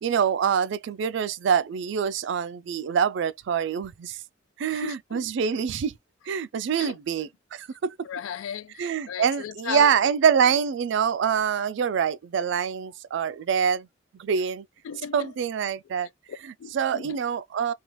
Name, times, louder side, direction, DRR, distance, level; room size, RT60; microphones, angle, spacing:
voice 1, 0.0-4.2 4.6-5.9 6.3-7.9 8.8-13.9 14.1-14.7 15.1-16.1 16.7-17.7, right 7 dB, 65° right, 0.3 m, -25 dB
voice 2, 4.7-5.3 6.8-7.0 8.0-10.1 10.4-10.6 14.8-15.3 16.3-17.2, left 8 dB, 85° left, 0.3 m, -36 dB
3.0 x 2.3 x 3.0 m
head